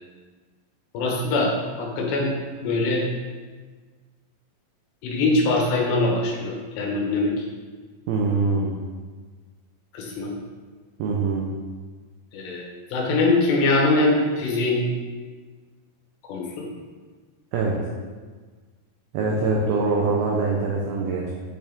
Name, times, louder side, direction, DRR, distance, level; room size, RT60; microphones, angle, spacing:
voice 1, 0.9-1.5 1.8-2.3 2.6-3.0 5.0-7.4 9.9-10.3 12.3-12.6 12.9-14.8 16.3-16.7, left 2 dB, 75° left, -1 dB, 3.3 m, -22 dB
voice 2, 8.1-8.7 11.0-11.5 17.5-17.9 19.1-21.3, right 3 dB, 75° right, -2 dB, 2.4 m, -23 dB
8.7 x 6.3 x 3.6 m, 1.4 s
omnidirectional pair, 5.1 m